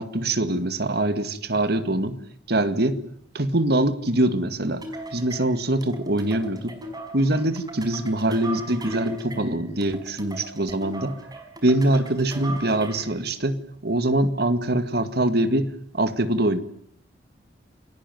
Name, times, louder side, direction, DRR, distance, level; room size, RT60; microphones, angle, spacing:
voice 1, 0.0-2.2 2.5-3.0 3.3-4.8 5.1-6.8 7.1-11.2 11.6-16.6, right 1 dB, 60° right, 11 dB, 2.1 m, -23 dB
sound 1, 4.8-13.2, right 1 dB, 20° right, 5.3 m, -39 dB
29.0 x 20.5 x 9.3 m, 0.64 s
head